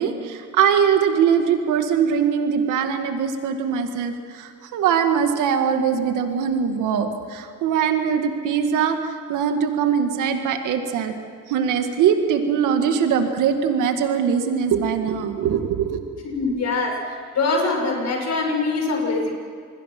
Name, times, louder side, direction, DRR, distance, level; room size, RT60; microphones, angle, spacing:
voice 1, 0.0-11.1 11.5-16.0, right 7 dB, 90° right, 6 dB, 2.0 m, -21 dB
voice 2, 16.2-19.4, left 3 dB, 60° left, 2 dB, 6.1 m, -23 dB
27.5 x 21.0 x 6.1 m, 2.2 s
cardioid pair, 90°, 30 cm